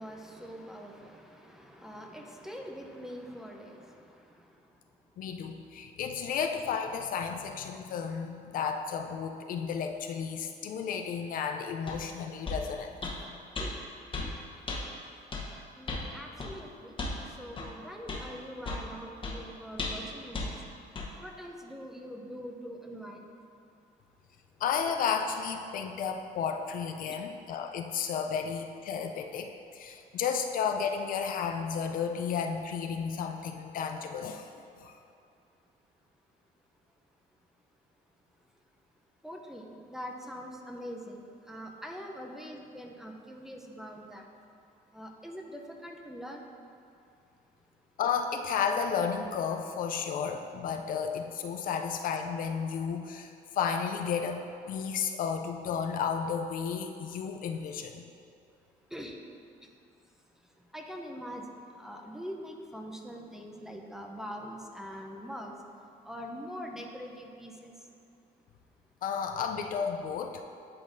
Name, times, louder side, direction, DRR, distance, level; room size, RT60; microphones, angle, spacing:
voice 1, 0.0-4.7 13.6-13.8 15.8-20.5 21.2-23.3 39.2-44.3 44.9-46.5 58.9-59.2 59.6-59.7 60.7-65.5 66.0-67.7, equal, 5° right, 1 dB, 0.6 m, -43 dB
voice 2, 5.2-12.9 24.6-34.5 34.8-35.0 48.0-53.3 53.6-58.0 69.0-70.4, left 6 dB, 55° left, 5 dB, 0.4 m, -32 dB
sound 1, 11.9-12.0 12.5-12.6 13.0-13.2 13.6-13.7 14.1-14.3 14.7-14.8 15.3-15.5 15.9-16.1 16.4-16.5 17.0-17.2 17.6-17.7 18.1-18.2 18.6-18.9 19.2-19.4 19.8-20.1 20.3-20.5 21.0-21.1, left 3 dB, 30° left, 1.0 m, -34 dB
10.5 x 3.9 x 2.6 m, 2.5 s
cardioid pair, 110°, 17 cm